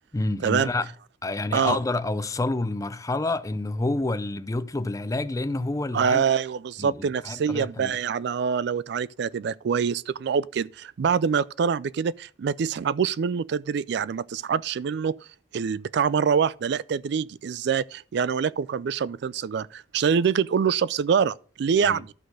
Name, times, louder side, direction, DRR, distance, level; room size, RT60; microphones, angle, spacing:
voice 1, 0.1-0.9 1.2-6.2 6.8-8.0 21.8-22.0, left 2 dB, 20° left, 0.5 m, -28 dB
voice 2, 5.9-15.2 15.5-22.1, right 6 dB, 65° right, 0.3 m, -25 dB
11.5 x 4.2 x 6.3 m
head